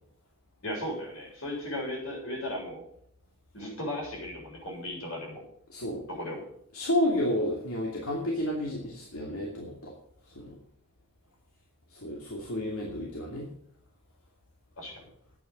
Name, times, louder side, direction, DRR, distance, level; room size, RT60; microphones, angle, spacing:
voice 1, 0.6-2.8 3.5-5.5 6.1-6.5 14.8-15.0, left 1 dB, 65° left, -1 dB, 7.2 m, -36 dB
voice 2, 5.7-6.1 6.7-9.9 10.4-10.5 12.0-13.5, left 1 dB, 85° left, -2 dB, 2.7 m, -31 dB
11.0 x 8.8 x 8.1 m, 0.68 s
head